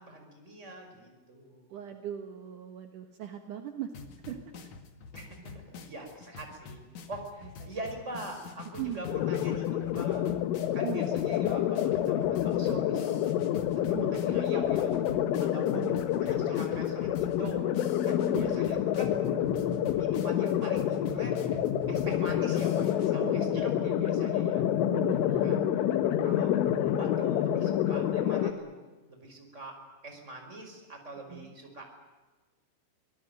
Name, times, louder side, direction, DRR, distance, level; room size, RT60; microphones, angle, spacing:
voice 1, 0.0-1.7 5.1-6.8 7.1-10.2 10.7-13.3 13.9-15.0 15.4-17.6 18.0-19.1 19.9-21.4 21.9-24.7 25.4-25.6 26.2-26.5 26.8-28.7 29.1-29.8 30.0-31.8, right 1 dB, 15° right, 3 dB, 5.2 m, -44 dB
voice 2, 1.7-3.9 4.2-4.4 7.6-7.7 8.8-9.1 10.8-11.2 13.8-14.3 15.7-16.2 18.2-18.7 23.2-24.5 24.9-26.0 31.3-31.5, right 10 dB, 65° right, 6 dB, 2.0 m, -40 dB
sound 1, 3.9-23.1, left 4 dB, 50° left, 2.5 m, -47 dB
sound 2, 9.0-28.5, left 10 dB, 80° left, 3.8 m, -28 dB
26.0 x 18.5 x 9.1 m, 1.3 s
omnidirectional pair, 5.8 m